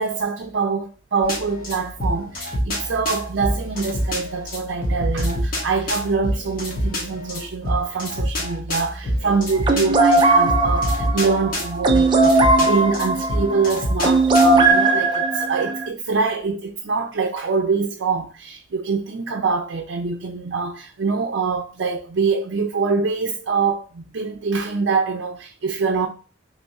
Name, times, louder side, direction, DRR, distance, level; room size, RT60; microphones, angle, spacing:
voice 1, 0.0-26.1, right 4 dB, 85° right, 0.4 m, -24 dB
sound 1, 1.2-14.7, equal, 50° left, 1.1 m, -27 dB
sound 2, 9.6-15.9, right 2 dB, 25° right, 0.4 m, -18 dB
3.0 x 2.4 x 4.0 m
head